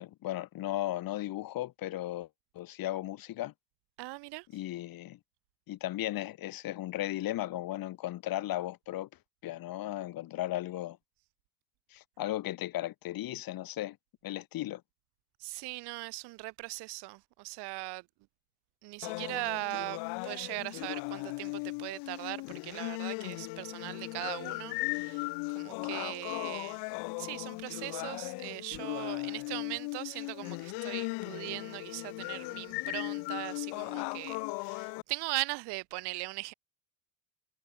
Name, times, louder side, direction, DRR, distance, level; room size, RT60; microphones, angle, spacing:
voice 1, 0.0-2.3 2.6-3.5 4.5-5.2 5.7-9.1 9.4-11.0 11.9-14.0 14.2-14.8, left 14 dB, 55° left, 3.6 m, -36 dB
voice 2, 4.0-4.5 15.4-18.0 18.8-26.8 27.2-36.5, right 24 dB, 65° right, 6.3 m, -39 dB
sound 1, 19.0-35.0, left 30 dB, 70° left, 4.9 m, -38 dB
hypercardioid pair, 85°, 42 cm